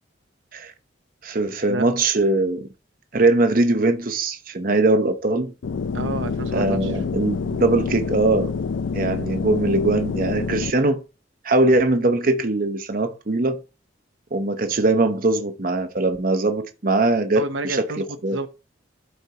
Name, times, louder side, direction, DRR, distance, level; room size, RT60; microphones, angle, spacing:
voice 1, 1.2-2.7 3.1-5.5 6.5-8.5 8.9-11.0 11.4-13.6 14.3-18.4, right 2 dB, 45° right, 0.8 m, -21 dB
sound 1, 5.6-10.7, left 5 dB, 85° left, 0.4 m, -27 dB
voice 2, 5.9-6.9 17.3-18.5, right 2 dB, 85° right, 0.8 m, -30 dB
13.0 x 4.4 x 2.9 m
head